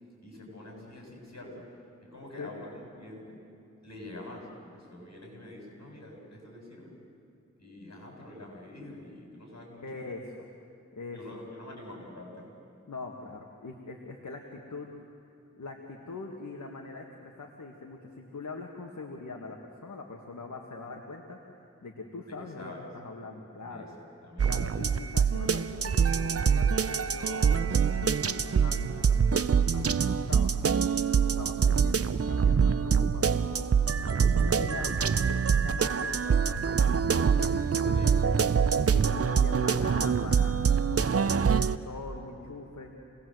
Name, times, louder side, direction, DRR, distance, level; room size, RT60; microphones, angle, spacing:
voice 1, 0.2-1.7 2.0-3.4 3.8-7.0 7.6-9.8 11.1-12.5 22.3-22.9 23.6-24.6 37.4-38.3, left 1 dB, 60° left, -1 dB, 7.6 m, -46 dB
voice 2, 9.8-10.4 10.9-11.4 12.9-14.9 15.6-21.4 21.8-23.9 24.4-27.6 28.2-30.5 31.1-33.7 34.1-40.5 40.8-42.9, left 3 dB, 80° left, 0 dB, 2.0 m, -42 dB
sound 1, 24.4-41.8, right 6 dB, 55° right, 0.7 m, -25 dB
28.5 x 19.5 x 7.9 m, 2.6 s
wide cardioid pair, 60°, 29 cm